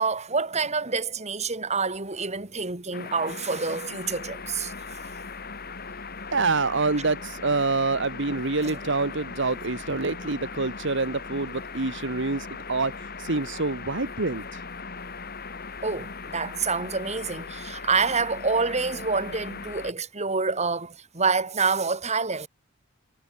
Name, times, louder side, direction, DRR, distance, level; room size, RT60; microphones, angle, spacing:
voice 1, 0.0-4.7 15.8-22.5, right 4 dB, 35° right, 3.5 m, -27 dB
sound 1, 2.9-19.9, left 4 dB, 50° left, 5.1 m, -39 dB
voice 2, 6.3-14.6, right 3 dB, 65° right, 1.5 m, -26 dB
head